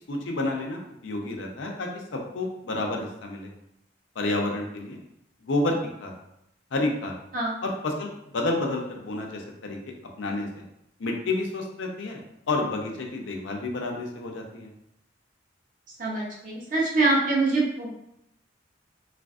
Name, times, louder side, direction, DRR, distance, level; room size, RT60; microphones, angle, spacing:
voice 1, 0.1-3.5 4.2-5.0 5.4-6.1 6.7-7.2 7.6-9.8 10.2-10.6 11.0-12.2 12.5-14.7, left 2 dB, 90° left, 1 dB, 0.5 m, -30 dB
voice 2, 16.0-17.9, right 2 dB, 45° right, -4 dB, 0.7 m, -24 dB
3.3 x 2.5 x 2.3 m, 0.79 s
head